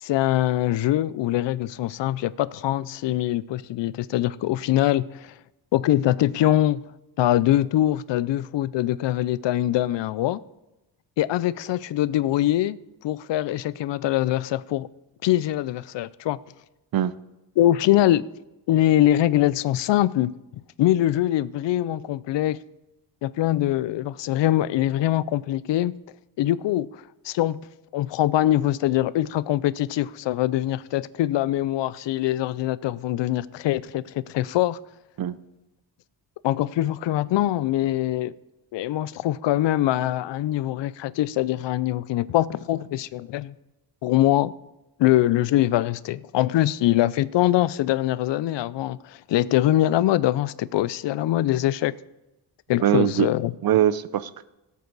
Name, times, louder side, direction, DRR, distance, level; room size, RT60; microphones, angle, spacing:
voice 1, 0.0-5.3 5.7-6.8 7.2-10.4 11.2-12.8 13.0-14.9 15.2-16.4 17.6-18.3 18.7-20.3 20.8-22.6 23.2-25.9 26.4-27.6 27.9-34.8 36.4-38.3 38.7-43.5 44.0-44.5 45.0-51.9 52.7-53.5, left 13 dB, 80° left, 0.5 m, -23 dB
voice 2, 52.8-53.3 53.6-54.5, right 11 dB, 55° right, 0.6 m, -22 dB
17.0 x 8.4 x 4.0 m
wide cardioid pair, 130°, 44 cm